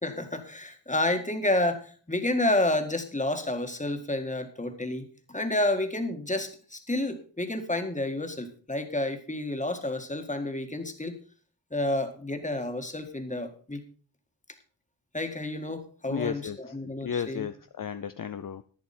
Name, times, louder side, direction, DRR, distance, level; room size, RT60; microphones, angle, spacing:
voice 1, 0.0-11.2 11.7-13.8 15.1-17.5, left 1 dB, 15° left, 6 dB, 1.8 m, -30 dB
voice 2, 16.0-16.8 17.0-18.6, left 8 dB, 50° left, 11 dB, 0.6 m, -34 dB
11.0 x 11.0 x 4.4 m, 0.42 s
wide cardioid pair, 85°, 43 cm